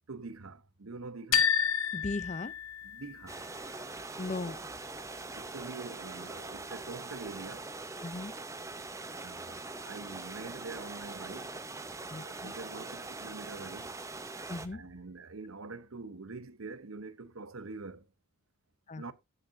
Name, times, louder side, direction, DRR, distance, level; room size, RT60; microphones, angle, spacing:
voice 1, 0.1-1.5 2.8-3.4 5.3-7.7 9.2-11.5 12.1-13.9 14.7-18.0 19.0-19.1, right 3 dB, 75° right, 0.9 m, -45 dB
sound 1, 1.3-3.2, left 8 dB, 75° left, 0.7 m, -29 dB
voice 2, 1.9-2.5 4.2-4.6 8.0-8.3 12.1-12.6 14.5-14.8 18.9-19.0, left 3 dB, 35° left, 0.5 m, -37 dB
sound 2, 3.3-14.7, right 3 dB, 15° right, 0.7 m, -42 dB
14.5 x 6.7 x 2.6 m
head